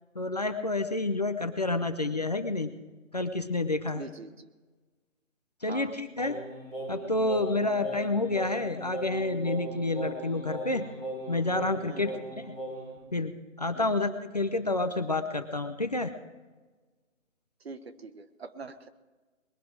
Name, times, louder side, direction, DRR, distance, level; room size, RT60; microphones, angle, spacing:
voice 1, 0.1-2.7 3.1-4.0 5.6-6.4 6.9-10.8 11.3-12.6 13.1-13.3 13.6-16.1, left 2 dB, 30° left, 8 dB, 0.6 m, -29 dB
voice 2, 3.9-4.5 5.7-5.9 11.8-12.1 13.7-13.9 17.6-18.9, right 4 dB, 50° right, 11 dB, 1.2 m, -43 dB
Singing, 6.2-13.0, right 2 dB, 10° right, 4.0 m, -38 dB
21.0 x 11.0 x 4.7 m, 1.3 s
hypercardioid pair, 175°, 40 cm